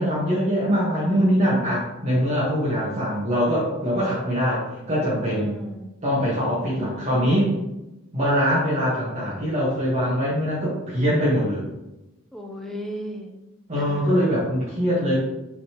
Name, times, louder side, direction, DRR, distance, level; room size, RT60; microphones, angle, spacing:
voice 1, 0.0-5.5 6.0-7.5 8.1-11.6 13.7-15.2, equal, 30° right, -8 dB, 1.4 m, -23 dB
voice 2, 2.7-3.1 5.4-5.9 6.7-7.5 12.3-13.4 13.8-14.2, equal, ahead, 1 dB, 0.6 m, -36 dB
8.0 x 4.0 x 2.9 m, 0.98 s
head